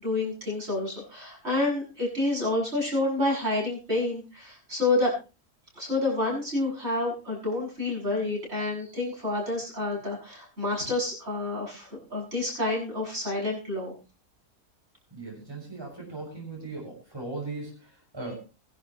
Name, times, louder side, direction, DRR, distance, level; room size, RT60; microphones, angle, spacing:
voice 1, 0.0-5.1 5.8-13.9, left 2 dB, 40° right, -3 dB, 8.2 m, -28 dB
voice 2, 15.1-18.3, right 3 dB, 15° right, -2 dB, 6.6 m, -38 dB
22.5 x 12.0 x 3.2 m, 0.32 s
omnidirectional pair, 1.6 m